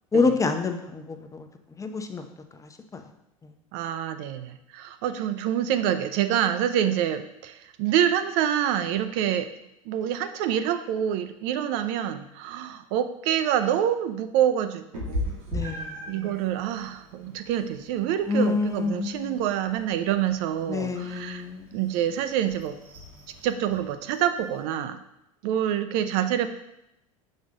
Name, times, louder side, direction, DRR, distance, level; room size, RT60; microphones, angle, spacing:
voice 1, 0.1-1.5 1.8-2.2 2.9-3.0 15.5-16.3 18.3-19.2 20.7-21.6, left 4 dB, 20° left, 6 dB, 0.7 m, -27 dB
voice 2, 3.7-9.5 9.9-15.3 16.1-21.4 21.7-22.8 23.4-25.0 25.4-26.5, right 10 dB, 55° right, 10 dB, 0.5 m, -26 dB
Meow, 14.9-24.6, equal, 80° right, 2.1 m, -39 dB
6.2 x 4.9 x 3.8 m, 0.86 s
hypercardioid pair, 80°, 18 cm